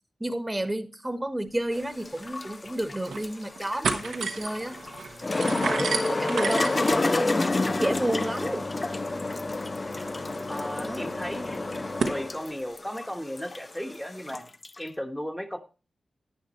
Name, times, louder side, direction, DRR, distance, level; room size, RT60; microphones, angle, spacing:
voice 1, 0.2-4.8 5.4-8.7 10.8-11.1, right 1 dB, 15° right, 1.2 m, -31 dB
sound 1, 1.7-14.8, left 2 dB, 40° left, 0.5 m, -30 dB
sound 2, 1.8-1.9 2.2-2.3 2.8-3.3 3.6-12.2, right 5 dB, 85° right, 1.1 m, -35 dB
voice 2, 10.5-11.7 12.1-14.5 14.8-15.6, equal, 5° left, 1.3 m, -35 dB
10.5 x 9.2 x 3.0 m
cardioid pair, 45°, 0 cm